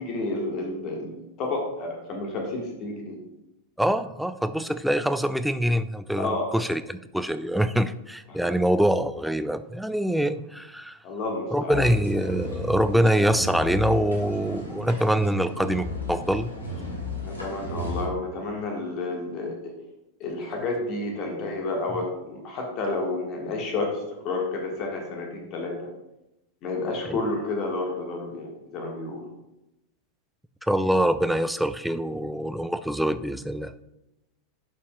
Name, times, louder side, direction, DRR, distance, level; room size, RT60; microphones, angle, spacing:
voice 1, 0.0-3.2 6.2-6.5 8.3-8.5 11.0-11.8 17.2-19.7 20.2-25.9 26.6-29.3, left 2 dB, 35° left, 1 dB, 1.4 m, -30 dB
voice 2, 3.8-11.0 11.5-16.5 27.1-27.2 30.7-33.7, equal, ahead, 11 dB, 0.3 m, -24 dB
sound 1, 11.7-18.0, left 2 dB, 80° left, 1.8 m, -34 dB
11.0 x 5.6 x 2.2 m, 0.92 s
figure-of-eight pair, 90°, 0 cm